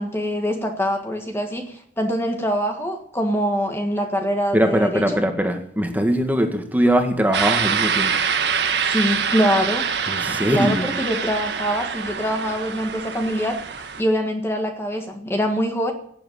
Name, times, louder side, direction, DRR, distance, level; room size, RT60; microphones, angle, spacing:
voice 1, 0.0-5.0 8.8-9.9 10.5-13.6 14.0-15.9, equal, 15° left, 4 dB, 1.6 m, -24 dB
voice 2, 4.5-8.1 10.1-10.9, equal, 10° right, 5 dB, 1.7 m, -21 dB
sound 1, 7.3-14.0, right 6 dB, 70° right, 1.5 m, -25 dB
18.0 x 8.1 x 9.3 m, 0.67 s
head